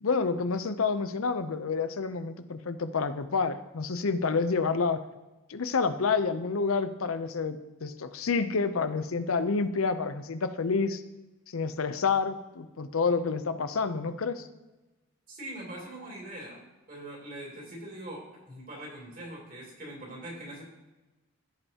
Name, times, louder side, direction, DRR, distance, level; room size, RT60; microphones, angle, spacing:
voice 1, 0.0-5.0 5.5-11.0 11.5-14.5, left 4 dB, 85° left, 11 dB, 0.6 m, -28 dB
voice 2, 15.3-16.6 16.9-20.6, right 1 dB, 40° right, -3 dB, 3.1 m, -42 dB
15.5 x 5.5 x 2.9 m, 1.1 s
head